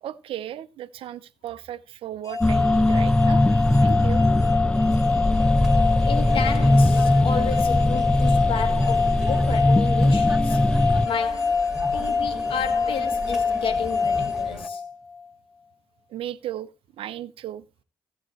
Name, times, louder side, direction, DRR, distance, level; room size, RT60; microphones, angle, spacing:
voice 1, 0.0-3.5 3.8-4.3 16.1-16.7 17.0-17.6, right 12 dB, 60° right, 0.8 m, -35 dB
sound 1, 2.3-15.2, left 5 dB, 35° left, 1.8 m, -25 dB
sound 2, 2.4-11.1, left 1 dB, 10° left, 0.5 m, -20 dB
sound 3, 5.3-14.7, right 1 dB, 5° right, 2.4 m, -37 dB
voice 2, 6.0-10.6 11.0-11.6 11.9-14.8, left 7 dB, 60° left, 1.8 m, -32 dB
16.5 x 7.5 x 3.2 m
figure-of-eight pair, 40°, 10 cm